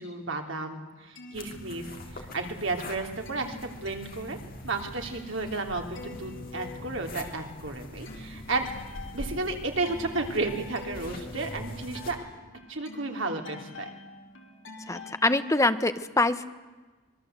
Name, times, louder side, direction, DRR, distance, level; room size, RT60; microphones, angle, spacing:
voice 1, 0.0-1.9 2.1-4.4 4.6-8.7 9.1-12.2 12.7-13.9, right 3 dB, 65° right, 3 dB, 3.2 m, -32 dB
sound 1, 1.0-2.4 2.7-15.5, left 3 dB, 65° left, 3.8 m, -46 dB
sound 2, 1.3-12.1, left 1 dB, 45° left, 3.4 m, -43 dB
voice 2, 14.9-16.4, left 2 dB, 15° left, 10 dB, 0.9 m, -24 dB
25.5 x 22.0 x 8.0 m, 1.3 s
head